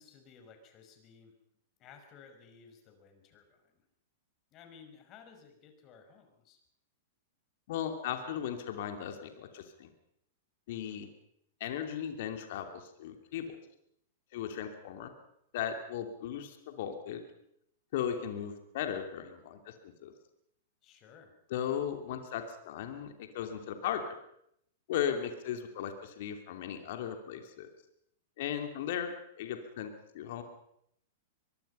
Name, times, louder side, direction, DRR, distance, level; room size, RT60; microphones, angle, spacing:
voice 1, 0.0-1.3 1.8-3.8 4.5-6.6 20.8-21.3, left 6 dB, 35° left, 6 dB, 5.6 m, -56 dB
voice 2, 7.7-9.9 10.7-11.1 11.6-13.6 14.3-15.1 15.5-17.2 17.9-19.7 20.0-20.1 21.5-24.1 24.9-27.7 28.4-29.1 29.4-30.4, left 9 dB, 55° left, 6 dB, 2.9 m, -37 dB
23.0 x 23.0 x 5.6 m, 0.75 s
hypercardioid pair, 105°, 0 cm